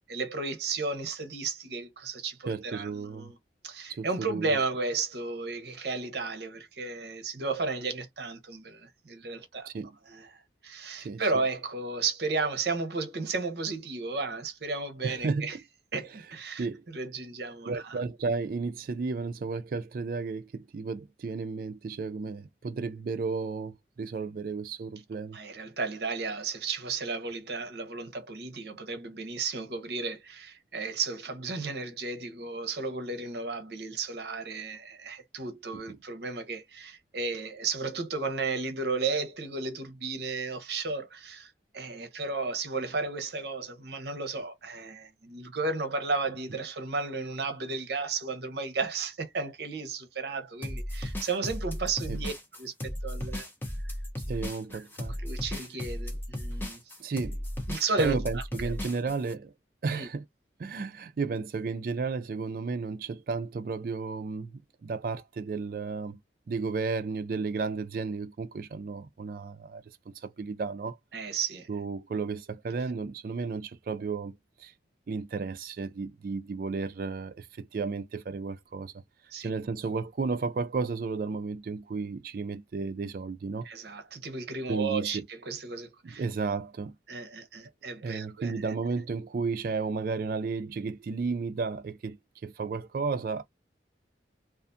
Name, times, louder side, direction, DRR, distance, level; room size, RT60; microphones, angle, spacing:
voice 1, 0.0-3.4 3.6-9.7 10.1-15.6 15.9-16.7 16.9-18.0 25.3-52.3 52.6-53.5 53.8-53.9 54.7-54.8 55.2-56.8 57.7-58.7 59.9-60.1 71.1-71.7 79.3-79.5 83.6-86.2 87.1-88.5, right 4 dB, 65° right, 0.7 m, -34 dB
voice 2, 2.5-3.3 3.9-4.6 9.7-9.9 11.0-11.2 15.0-15.5 16.6-16.8 17.7-25.4 35.9-36.0 52.1-52.2 54.3-55.2 57.0-57.4 58.0-59.5 59.8-60.2 60.6-66.2 66.5-71.0 71.7-74.7 75.1-78.9 79.4-83.7 84.7-85.3 86.0-86.9 88.0-92.2 92.4-93.4, right 4 dB, 50° right, 0.3 m, -33 dB
sound 1, 50.6-59.3, left 1 dB, 10° left, 0.5 m, -35 dB
2.4 x 2.3 x 2.5 m
head